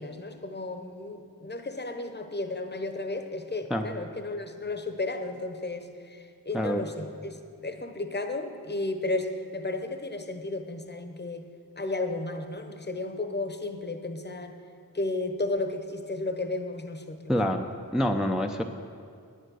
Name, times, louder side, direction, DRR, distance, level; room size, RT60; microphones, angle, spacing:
voice 1, 0.0-7.4 7.6-11.4 11.8-14.5 14.9-17.4, left 2 dB, 25° left, 7 dB, 0.9 m, -33 dB
voice 2, 6.5-6.8 17.3-17.7 17.9-18.6, equal, ahead, 4 dB, 0.5 m, -26 dB
9.8 x 9.2 x 6.3 m, 2.2 s
wide cardioid pair, 50°, 38 cm